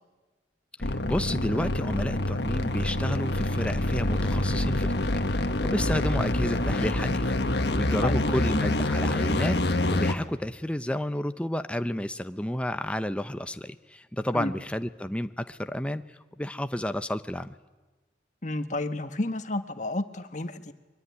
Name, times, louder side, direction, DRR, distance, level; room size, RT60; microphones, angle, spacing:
sound 1, 0.8-10.1, left 1 dB, 70° left, 1.5 m, -26 dB
voice 1, 0.8-17.5, left 1 dB, 5° left, 10 dB, 0.8 m, -31 dB
voice 2, 18.4-20.7, left 2 dB, 45° left, 9 dB, 1.5 m, -31 dB
23.5 x 23.0 x 9.6 m, 1.2 s
head